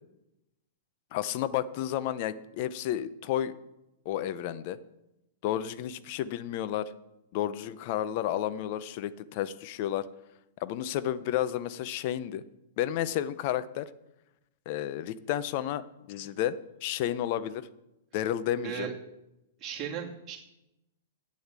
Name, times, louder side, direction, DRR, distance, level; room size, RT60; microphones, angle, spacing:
voice 1, 1.1-3.6 4.0-4.8 5.4-6.9 7.3-10.1 10.6-12.4 12.8-13.9 14.7-17.6 18.1-18.9, left 11 dB, 50° left, 15 dB, 0.7 m, -31 dB
voice 2, 19.6-20.4, right 8 dB, 30° right, -1 dB, 2.3 m, -36 dB
8.6 x 8.0 x 7.4 m, 0.92 s
hypercardioid pair, 120°, 0 cm